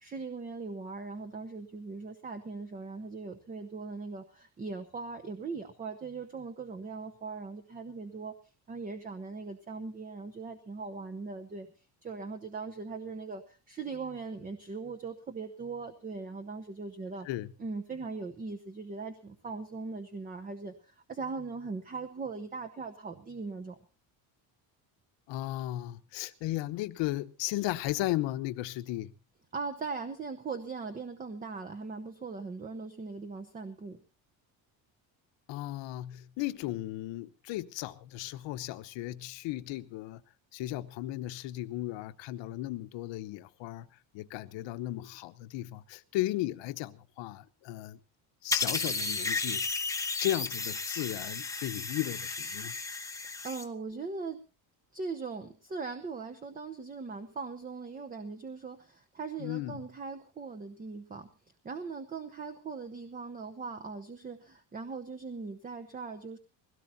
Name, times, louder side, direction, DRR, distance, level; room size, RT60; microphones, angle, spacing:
voice 1, 0.0-8.3 8.7-17.3 17.6-23.8 29.5-34.0 53.4-54.4 54.9-61.3 61.6-66.4, right 4 dB, 20° right, 0.9 m, -40 dB
voice 2, 25.3-29.1 35.5-40.2 40.5-43.9 44.1-48.0 48.4-49.6 50.2-52.7 59.4-59.8, left 15 dB, 75° left, 1.1 m, -35 dB
sound 1, 48.5-53.6, left 3 dB, 5° left, 1.0 m, -34 dB
21.0 x 17.5 x 2.8 m
cardioid pair, 160°, 44 cm